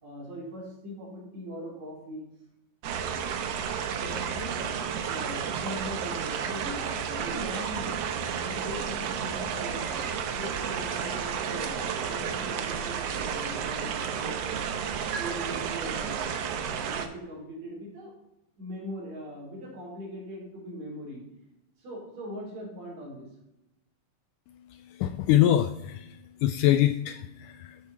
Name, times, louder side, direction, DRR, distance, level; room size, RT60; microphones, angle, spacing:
voice 1, 0.0-2.3 3.9-8.0 8.4-9.9 10.1-14.7 15.2-18.1 18.6-21.2 21.8-23.3, equal, 50° right, -4 dB, 5.0 m, -40 dB
sound 1, 2.8-17.1, right 7 dB, 75° right, 1.4 m, -32 dB
Trumpet, 9.8-15.0, left 2 dB, 50° left, 1.5 m, -49 dB
voice 2, 24.7-27.8, left 12 dB, 80° left, 10 dB, 1.9 m, -25 dB
13.5 x 6.6 x 4.2 m, 0.89 s
omnidirectional pair, 4.0 m